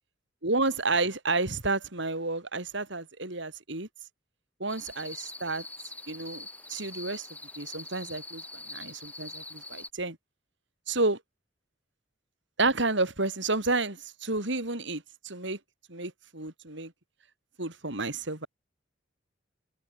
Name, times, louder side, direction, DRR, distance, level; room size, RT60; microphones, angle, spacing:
voice 1, 0.4-3.9 4.6-5.7 6.1-7.3 7.6-8.4 8.7-10.2 10.9-11.2 12.6-15.6 15.9-16.9 17.6-18.5, right 3 dB, 60° right, 3.9 m, -30 dB
sound 1, 4.7-9.9, left 2 dB, 10° left, 7.8 m, -43 dB
head